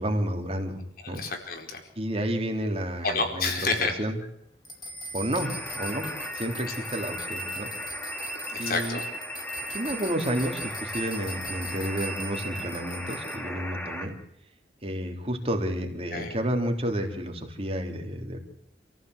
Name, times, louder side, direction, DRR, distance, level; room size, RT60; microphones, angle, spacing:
voice 1, 0.0-1.2 2.0-3.5 4.0-4.2 5.1-7.7 8.6-9.0 9.7-14.1 14.8-18.4, equal, 35° right, 3 dB, 3.4 m, -30 dB
voice 2, 1.0-1.8 3.0-4.0 8.6-9.0 16.1-16.4, left 3 dB, 55° left, 4 dB, 4.5 m, -29 dB
sound 1, 4.6-13.4, equal, 25° left, 4.5 m, -40 dB
sound 2, 5.4-14.1, equal, 10° left, 2.8 m, -37 dB
28.0 x 15.5 x 8.0 m, 0.75 s
head